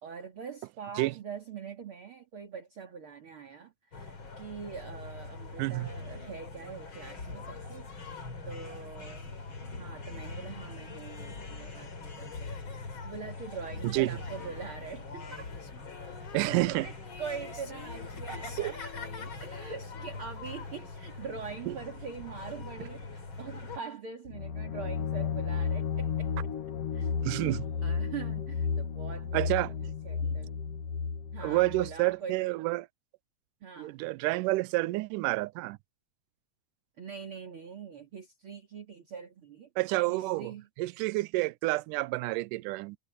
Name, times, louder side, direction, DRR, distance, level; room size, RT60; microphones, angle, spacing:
voice 1, 0.0-7.9 8.4-9.3 9.7-15.5 16.6-26.5 26.9-30.6 31.3-32.5 33.6-33.9 37.0-39.7 40.1-40.7, right 6 dB, 45° right, 3.0 m, -43 dB
sound 1, 3.9-23.8, left 3 dB, 40° left, 3.9 m, -42 dB
voice 2, 5.6-5.9 13.8-14.2 16.3-16.9 18.6-18.7 21.7-21.8 27.2-27.6 29.3-29.7 31.4-32.9 33.8-35.8 39.8-40.5 40.8-43.0, right 20 dB, 90° right, 2.1 m, -29 dB
Female singing, 14.2-21.7, left 7 dB, 85° left, 7.9 m, -52 dB
sound 2, 24.3-32.0, left 6 dB, 55° left, 2.0 m, -33 dB
omnidirectional pair, 3.7 m